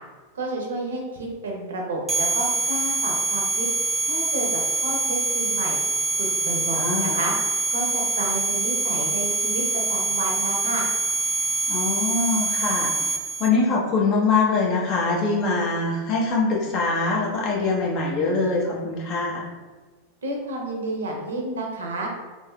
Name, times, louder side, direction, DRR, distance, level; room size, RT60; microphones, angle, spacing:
voice 1, 0.3-3.7 4.1-5.8 6.2-7.3 7.7-9.6 9.9-10.9 20.2-22.1, right 2 dB, 70° right, 0 dB, 0.6 m, -30 dB
sound 1, 2.1-13.5, right 3 dB, 5° right, 0.4 m, -25 dB
voice 2, 6.7-7.2 11.7-12.9 13.4-19.4, left 3 dB, 40° left, -3 dB, 0.8 m, -23 dB
3.2 x 2.9 x 2.2 m, 1.3 s
figure-of-eight pair, 90°, 0 cm